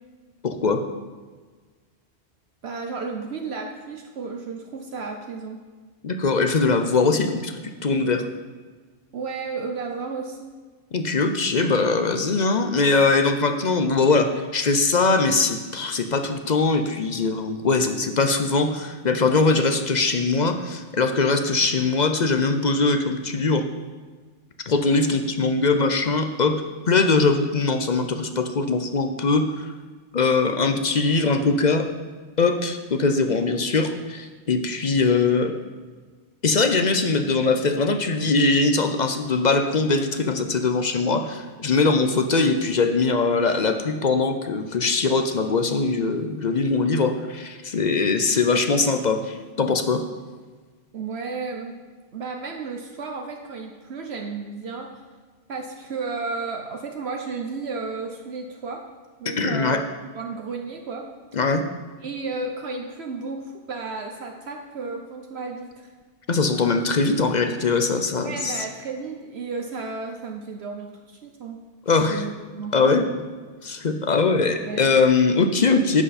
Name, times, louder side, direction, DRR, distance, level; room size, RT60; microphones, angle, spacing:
voice 1, 0.4-0.8 6.0-8.3 10.9-23.7 24.7-29.7 30.1-31.9 32.4-35.5 36.4-50.0 59.4-59.8 61.3-61.6 66.3-68.6 71.9-72.2 72.7-73.0 73.6-76.0, left 3 dB, 45° left, 7 dB, 0.7 m, -21 dB
voice 2, 2.6-5.6 9.1-10.5 50.9-51.7 52.1-54.9 55.5-58.8 59.2-59.9 60.1-61.1 62.0-65.9 68.2-71.6 72.1-72.9 74.6-74.8, right 4 dB, 65° right, 3 dB, 1.1 m, -33 dB
11.0 x 7.9 x 4.2 m, 1.4 s
omnidirectional pair, 1.2 m